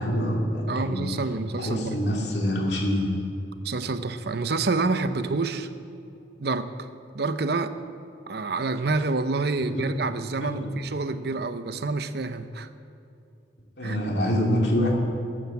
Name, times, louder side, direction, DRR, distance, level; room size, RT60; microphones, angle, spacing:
voice 1, 0.0-1.2 1.5-3.2 9.6-9.8 10.4-10.7 13.8-14.9, equal, 70° left, -1 dB, 2.6 m, -26 dB
voice 2, 0.7-1.9 3.6-5.7 6.4-6.9 7.1-7.8 8.3-12.7 13.8-14.0, right 3 dB, 65° right, 11 dB, 0.7 m, -28 dB
14.5 x 9.5 x 7.4 m, 2.7 s
head